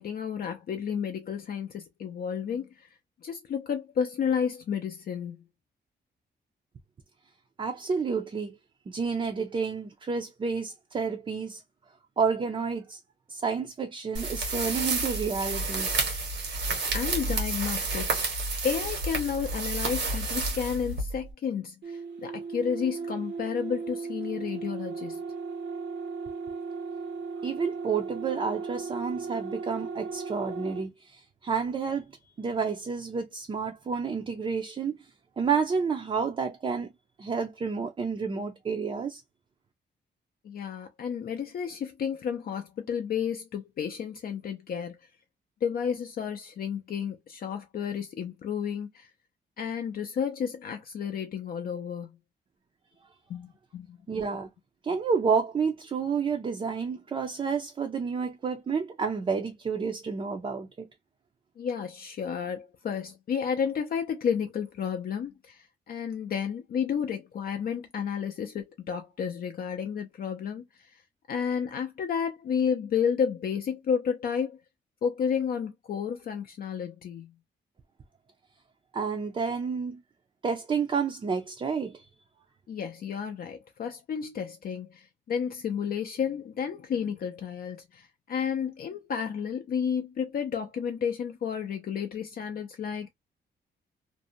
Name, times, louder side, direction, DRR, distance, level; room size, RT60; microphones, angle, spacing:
voice 1, 0.0-2.9 3.2-5.4 16.9-18.2 18.6-25.2 40.4-45.0 45.6-49.1 49.6-52.2 53.3-54.0 61.6-71.0 71.3-74.6 75.0-77.3 82.7-93.1, left 7 dB, 55° left, 0.4 m, -31 dB
voice 2, 7.6-8.6 8.9-11.6 12.2-13.0 13.3-16.0 27.4-32.1 32.4-35.1 35.4-36.9 37.2-39.2 54.1-54.5 54.8-60.9 78.9-80.0 80.4-82.1, right 5 dB, 30° right, 0.4 m, -30 dB
sound 1, 14.1-21.3, right 3 dB, 90° right, 1.2 m, -30 dB
sound 2, 21.8-30.9, right 4 dB, 70° right, 0.7 m, -36 dB
2.5 x 2.1 x 2.6 m
cardioid pair, 125°, 19 cm